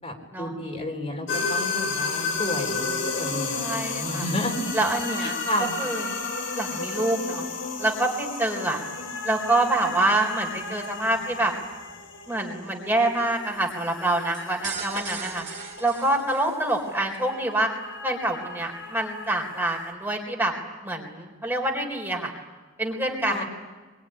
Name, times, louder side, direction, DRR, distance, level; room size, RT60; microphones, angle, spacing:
voice 1, 0.0-4.7 5.2-5.7 23.3-23.4, left 1 dB, 30° left, 1 dB, 4.0 m, -31 dB
sound 1, 1.3-19.9, left 3 dB, 65° left, 3.4 m, -33 dB
voice 2, 3.5-4.2 4.7-5.4 5.8-6.2 6.5-7.5 7.8-8.8 9.2-11.5 12.3-15.4 15.8-17.7 18.0-20.5 20.8-22.3 22.8-23.4, right 2 dB, 10° right, 1 dB, 4.0 m, -26 dB
sound 2, 14.3-16.9, right 6 dB, 40° right, 3.7 m, -37 dB
24.5 x 23.0 x 10.0 m, 1.3 s
head